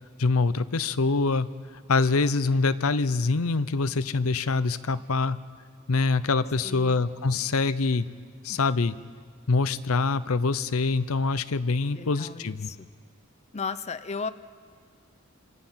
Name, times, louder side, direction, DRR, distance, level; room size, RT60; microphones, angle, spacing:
voice 1, 0.2-1.5 1.9-5.4 5.9-8.1 8.4-9.0 9.5-12.7, left 3 dB, 90° left, 13 dB, 0.7 m, -25 dB
voice 2, 6.6-7.1 11.9-12.9 13.5-14.3, left 5 dB, 30° left, 11 dB, 0.6 m, -35 dB
27.0 x 27.0 x 5.7 m, 2.1 s
head